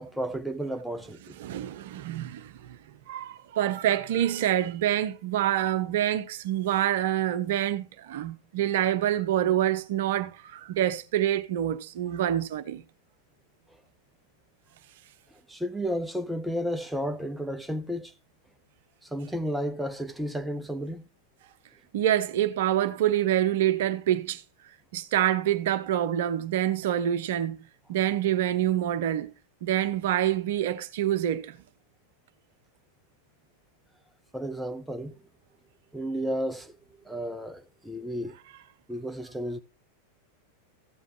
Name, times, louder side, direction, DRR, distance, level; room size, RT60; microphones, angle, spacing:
voice 1, 0.0-1.3 15.3-18.1 19.0-21.1 34.3-35.2 35.9-36.8 37.0-38.4 38.9-39.6, equal, 5° right, 0.6 m, -32 dB
voice 2, 1.4-2.8 3.1-12.8 21.9-24.4 24.9-27.6 27.9-29.3 29.6-31.6, right 11 dB, 55° right, 0.7 m, -26 dB
14.0 x 7.2 x 2.9 m
figure-of-eight pair, 90°, 0 cm